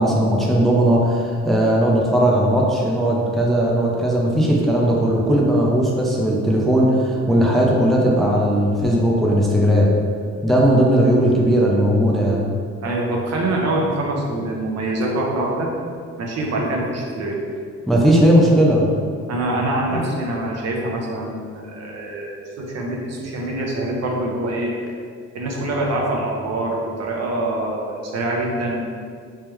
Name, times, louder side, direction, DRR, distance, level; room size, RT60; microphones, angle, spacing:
voice 1, 0.0-9.9 10.4-12.4 17.9-18.9 19.9-20.0, right 1 dB, ahead, -3 dB, 0.5 m, -17 dB
voice 2, 12.8-15.7 16.2-17.4 19.3-24.7 25.3-28.9, right 1 dB, 60° right, -1 dB, 0.8 m, -24 dB
3.4 x 3.3 x 3.0 m, 2.1 s
cardioid pair, 90°, 30 cm